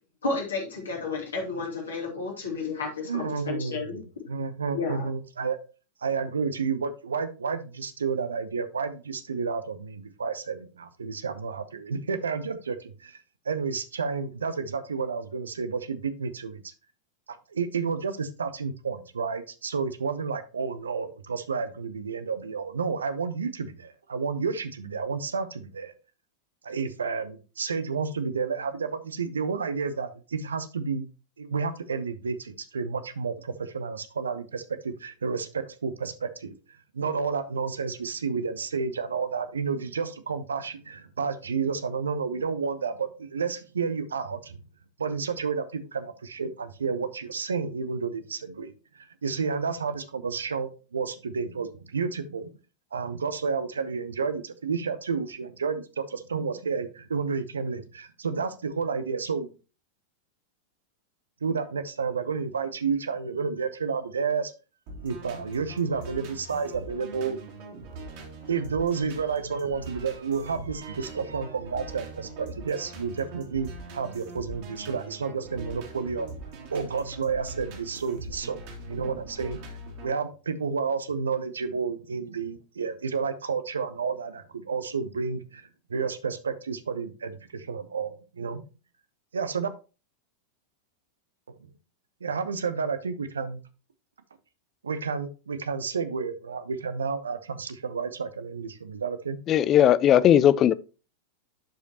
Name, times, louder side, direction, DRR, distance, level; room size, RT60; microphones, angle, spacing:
voice 1, 0.2-4.0 4.7-5.1, left 4 dB, 70° left, 2.6 m, -32 dB
voice 2, 3.0-5.6 6.0-13.2 13.5-16.6 17.5-25.9 26.6-31.0 31.4-36.5 36.9-44.5 45.0-52.5 52.9-59.5 61.4-64.5 65.0-67.4 68.5-76.3 76.7-78.6 78.9-79.6 80.0-85.6 85.9-88.6 89.3-89.7 92.2-93.6 94.8-99.4, right 5 dB, 70° right, 0.7 m, -31 dB
sound 1, 64.9-80.1, right 3 dB, 45° right, 2.5 m, -42 dB
voice 3, 99.5-100.7, left 10 dB, 30° left, 0.4 m, -18 dB
11.5 x 5.1 x 2.8 m
figure-of-eight pair, 90°, 0 cm